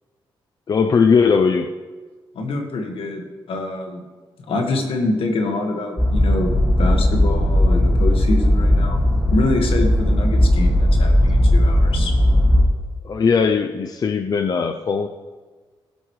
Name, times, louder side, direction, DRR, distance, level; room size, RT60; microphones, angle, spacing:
voice 1, 0.7-1.7 13.0-15.1, left 5 dB, 45° left, 6 dB, 0.6 m, -18 dB
voice 2, 2.4-3.2 3.5-4.0 4.5-6.5 6.8-9.0 9.3-12.1, left 2 dB, 75° left, 3 dB, 1.7 m, -25 dB
sound 1, 6.0-12.6, left 1 dB, 10° left, 2.0 m, -17 dB
15.5 x 7.9 x 3.2 m, 1.3 s
cardioid pair, 90°, 9 cm